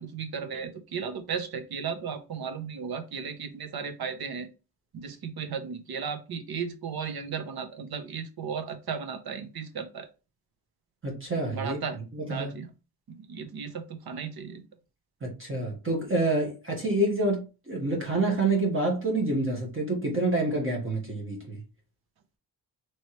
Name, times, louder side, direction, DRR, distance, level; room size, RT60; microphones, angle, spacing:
voice 1, 0.0-4.5 4.9-10.1 11.5-12.0 12.3-12.7 13.2-14.6, right 6 dB, 60° right, 0.8 m, -35 dB
voice 2, 11.0-11.8 12.1-12.6 15.2-21.6, right 2 dB, 30° right, 1.3 m, -27 dB
4.3 x 3.1 x 3.1 m
wide cardioid pair, 145°, 41 cm